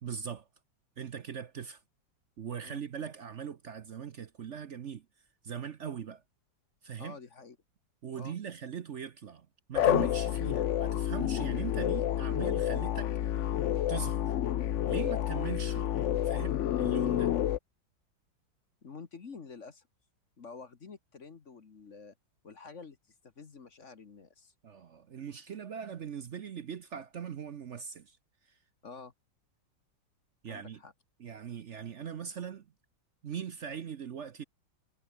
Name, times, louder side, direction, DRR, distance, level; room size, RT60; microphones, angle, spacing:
voice 1, 0.0-0.5 1.0-1.8 2.4-5.1 5.4-6.2 6.8-7.2 8.0-13.6 13.9-14.4 14.9-17.4 24.6-28.2 28.4-28.6 30.4-30.8 31.2-32.7 33.2-34.4, right 8 dB, 55° right, 0.8 m, -40 dB
voice 2, 7.0-7.6 8.1-8.4 18.8-19.8 20.4-22.1 22.4-23.0 23.2-24.5 28.8-29.1 30.5-30.9, left 5 dB, 40° left, 1.6 m, -48 dB
sound 1, 9.7-17.6, left 11 dB, 80° left, 0.6 m, -29 dB
omnidirectional pair, 2.1 m